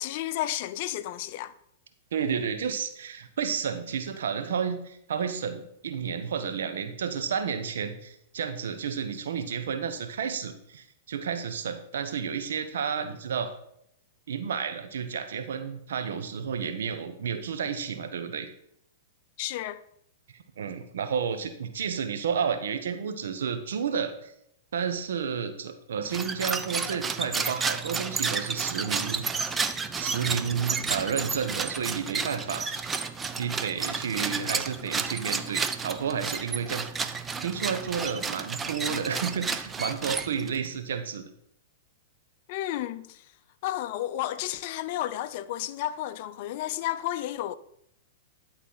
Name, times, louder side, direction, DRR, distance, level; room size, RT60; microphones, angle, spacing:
voice 1, 0.0-1.5 19.4-19.8 42.5-43.2 43.6-47.5, left 13 dB, 55° left, 0.5 m, -32 dB
voice 2, 2.1-13.5 14.3-18.5 20.3-24.3 24.7-29.3 29.9-32.8 33.4-36.9 37.4-41.3, right 7 dB, 75° right, 1.0 m, -31 dB
sound 1, 26.0-40.7, right 5 dB, 15° right, 0.5 m, -31 dB
11.5 x 4.1 x 5.6 m
hypercardioid pair, 120°, 0 cm